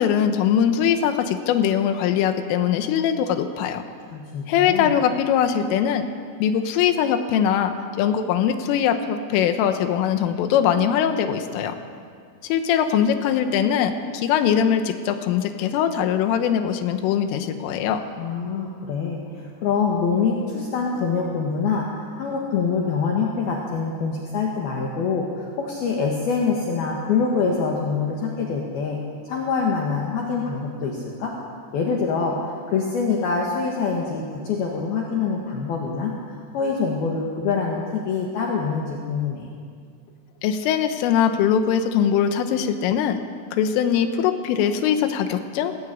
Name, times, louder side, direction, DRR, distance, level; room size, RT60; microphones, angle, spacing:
voice 1, 0.0-3.8 4.5-6.1 6.4-11.8 12.4-18.0 40.4-43.2 43.5-45.8, left 8 dB, 90° left, 8 dB, 3.6 m, -21 dB
voice 2, 4.1-5.0 18.2-21.9 22.2-29.0 29.2-31.3 31.7-36.1 36.5-39.5, left 5 dB, 60° left, -1 dB, 3.1 m, -25 dB
20.5 x 17.5 x 8.5 m, 2.1 s
omnidirectional pair, 5.8 m